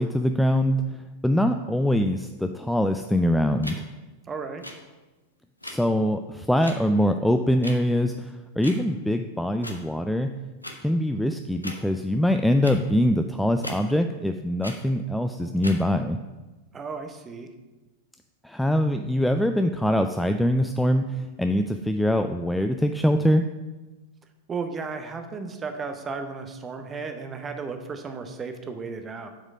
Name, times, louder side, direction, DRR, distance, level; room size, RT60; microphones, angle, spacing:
voice 1, 0.0-3.8 5.6-10.3 10.8-16.2 18.4-23.4, equal, ahead, 6 dB, 0.3 m, -23 dB
sound 1, 3.6-3.8 4.6-4.7 5.6-5.8 6.6-6.7 7.6-7.7 8.6-8.8 9.6-9.8 10.6-10.7 11.6-11.8 12.6-12.8 13.6-13.8 14.6-14.8 15.6-15.8, left 1 dB, 85° left, 0.8 m, -37 dB
voice 2, 4.3-4.6 16.7-17.5 24.5-29.3, right 4 dB, 20° right, 7 dB, 0.9 m, -34 dB
7.3 x 5.0 x 5.4 m, 1.2 s
figure-of-eight pair, 90°, 0 cm